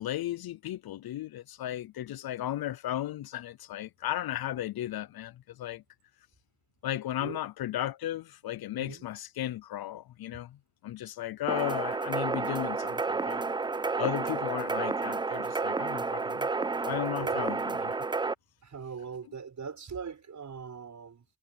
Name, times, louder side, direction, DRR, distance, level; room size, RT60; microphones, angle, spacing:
voice 1, 0.0-5.8 6.8-10.6 10.8-13.5 14.0-16.5 16.8-18.0, left 13 dB, 60° left, 0.7 m, -35 dB
sound 1, 11.5-18.3, right 4 dB, 10° right, 0.3 m, -31 dB
voice 2, 17.2-17.5 18.6-21.2, right 6 dB, 45° right, 6.7 m, -41 dB
cardioid pair, 90°, 42 cm